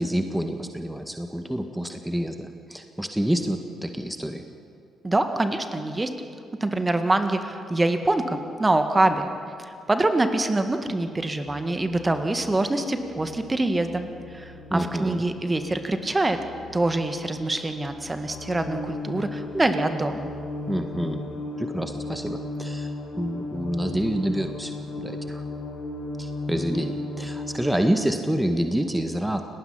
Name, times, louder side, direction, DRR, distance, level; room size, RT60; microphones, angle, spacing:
voice 1, 0.0-4.5 14.7-15.2 20.7-21.2 21.6-24.7 25.0-25.4 26.2-29.4, right 1 dB, 5° right, 6 dB, 1.8 m, -27 dB
voice 2, 5.0-6.1 6.6-9.3 9.6-16.4 16.7-20.3, right 2 dB, 20° right, 8 dB, 1.9 m, -25 dB
sound 1, 11.5-27.8, left 2 dB, 50° left, 4.0 m, -36 dB
29.5 x 19.0 x 5.8 m, 2.3 s
figure-of-eight pair, 40°, 0 cm